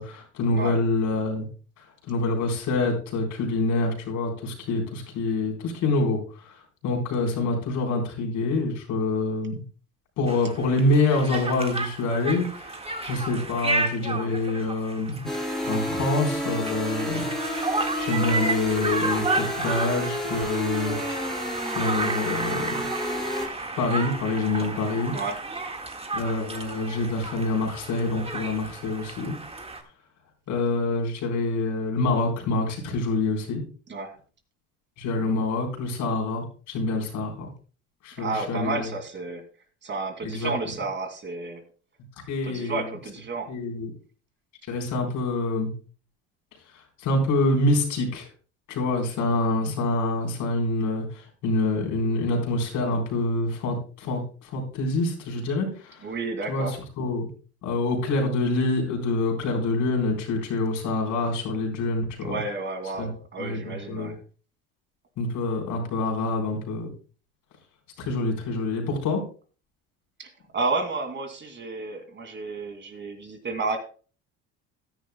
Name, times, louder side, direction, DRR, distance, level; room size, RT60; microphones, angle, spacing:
voice 1, 0.0-1.5 1.8-9.6 10.2-15.3 15.6-17.7 18.0-21.0 21.7-25.1 26.1-29.3 30.5-33.6 35.0-37.5 38.0-38.9 40.2-40.5 42.3-42.9 43.5-43.9 44.7-45.7 46.7-48.3 48.7-56.1 56.5-57.3 57.6-62.4 63.0-63.1 63.4-64.1 65.2-66.9 68.0-69.2, left 2 dB, 65° left, 2 dB, 4.2 m, -26 dB
Conversation, 10.3-29.8, right 2 dB, 20° right, 1.7 m, -32 dB
sound 1, 15.2-23.5, left 1 dB, ahead, 3.5 m, -31 dB
voice 2, 38.2-39.4 39.8-41.6 42.4-43.5 56.0-56.7 62.2-64.2 70.2-73.8, right 3 dB, 35° right, 6 dB, 2.4 m, -31 dB
15.5 x 10.5 x 2.2 m, 0.38 s
supercardioid pair, 80°, 33 cm